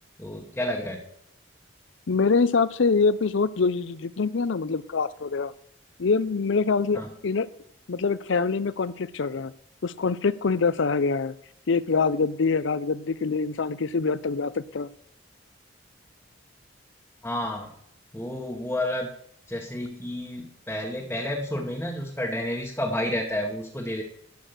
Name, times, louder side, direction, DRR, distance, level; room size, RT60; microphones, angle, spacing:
voice 1, 0.2-1.0 6.9-7.1 17.2-17.7 18.1-19.1 19.5-24.0, left 1 dB, 10° left, -1 dB, 1.1 m, -30 dB
voice 2, 2.1-5.5 6.0-7.5 7.9-9.5 9.8-11.3 11.7-14.9, left 4 dB, 70° left, 17 dB, 0.5 m, -24 dB
13.0 x 6.3 x 6.6 m, 0.70 s
head